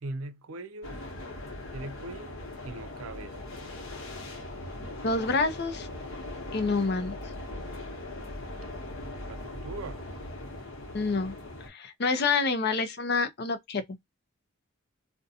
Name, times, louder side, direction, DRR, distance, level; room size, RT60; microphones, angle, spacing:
voice 1, 0.0-1.0 1.7-3.3 9.3-10.0, right 2 dB, 85° right, 0.5 m, -40 dB
sound 1, 0.8-11.7, left 1 dB, 85° left, 0.9 m, -40 dB
voice 2, 5.0-5.9 6.5-7.2 10.9-11.3 11.7-13.8, left 4 dB, 50° left, 0.5 m, -27 dB
2.6 x 2.2 x 2.6 m
head